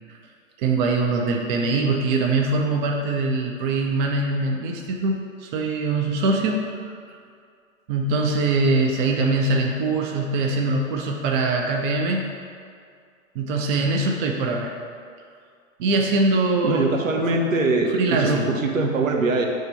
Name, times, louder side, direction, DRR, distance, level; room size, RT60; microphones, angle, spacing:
voice 1, 0.6-6.7 7.1-7.2 7.9-12.2 13.3-14.7 15.8-16.9 17.2-17.5 17.9-18.5, right 3 dB, 35° right, 1 dB, 0.7 m, -23 dB
voice 2, 16.6-19.5, right 3 dB, 75° right, 1 dB, 0.9 m, -22 dB
6.7 x 3.2 x 5.4 m, 2.3 s
figure-of-eight pair, 95°, 40 cm